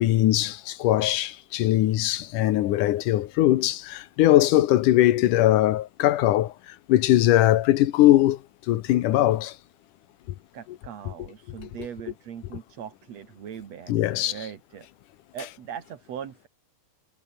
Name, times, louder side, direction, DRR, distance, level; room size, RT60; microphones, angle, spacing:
voice 1, 0.0-6.5 6.9-8.4 8.7-9.6 13.9-14.3, left 14 dB, 85° left, 2.6 m, -20 dB
voice 2, 10.5-14.9 15.3-16.5, right 8 dB, 60° right, 3.0 m, -40 dB
omnidirectional pair, 3.6 m